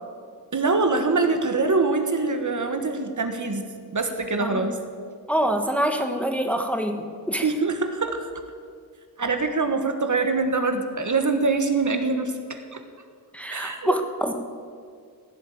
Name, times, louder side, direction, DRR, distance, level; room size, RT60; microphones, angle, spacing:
voice 1, 0.5-4.8 5.0-5.2 7.4-8.3 9.2-12.8 13.5-13.9, right 3 dB, 50° right, 6 dB, 1.4 m, -24 dB
voice 2, 5.3-7.4 13.3-14.4, equal, 5° left, 5 dB, 1.2 m, -25 dB
16.0 x 7.5 x 9.1 m, 2.1 s
wide cardioid pair, 80°, 38 cm